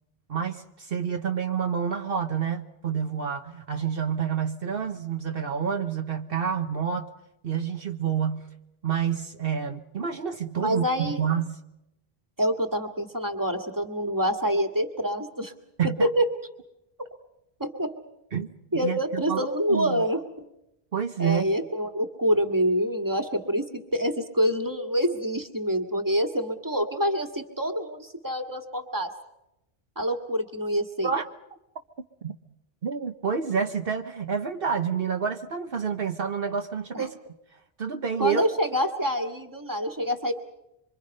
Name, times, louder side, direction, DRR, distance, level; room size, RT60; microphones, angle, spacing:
voice 1, 0.3-7.1 7.4-8.5 8.8-11.6 15.8-16.1 18.3-18.5 18.8-20.0 20.9-21.4 31.0-31.3 32.2-32.4 32.8-37.3 37.8-38.4, right 7 dB, 65° right, 5 dB, 1.2 m, -28 dB
voice 2, 10.6-11.2 12.4-15.5 15.8-16.3 17.6-17.9 18.7-20.5 21.2-29.1 30.0-31.1 36.9-37.1 38.2-40.3, equal, 20° right, 6 dB, 1.9 m, -26 dB
25.5 x 25.5 x 5.4 m, 0.87 s
omnidirectional pair, 1.1 m